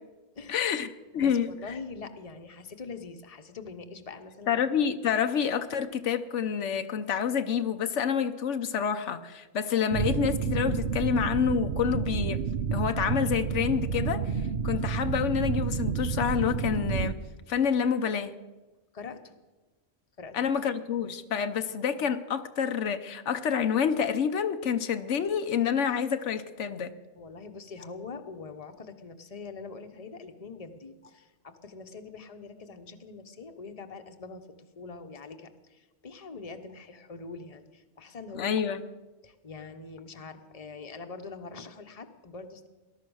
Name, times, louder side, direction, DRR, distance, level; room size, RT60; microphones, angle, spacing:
voice 1, 0.5-0.9 1.1-1.5 4.5-12.4 12.7-17.1 17.5-18.3 20.3-26.9 38.3-38.8, left 7 dB, 90° left, 9 dB, 1.2 m, -28 dB
voice 2, 1.2-4.6 18.9-19.3 20.2-20.5 21.0-21.1 27.2-34.5 34.8-38.6 39.2-42.7, left 4 dB, 35° left, 6 dB, 1.1 m, -43 dB
sound 1, 9.9-17.1, right 7 dB, 60° right, 0.9 m, -30 dB
19.0 x 12.0 x 6.3 m, 1.2 s
omnidirectional pair, 1.2 m